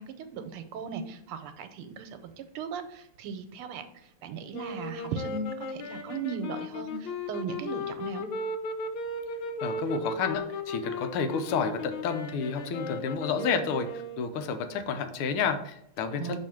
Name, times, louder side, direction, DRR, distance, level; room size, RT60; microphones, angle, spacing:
voice 1, 0.0-2.2 2.5-3.9 4.2-8.3 16.2-16.4, right 5 dB, 85° right, 9 dB, 1.6 m, -37 dB
sound 1, 4.5-14.6, left 2 dB, 75° left, 1.5 m, -36 dB
voice 2, 9.6-16.4, left 5 dB, 90° left, 8 dB, 1.6 m, -30 dB
6.2 x 3.2 x 5.8 m, 0.73 s
omnidirectional pair, 2.4 m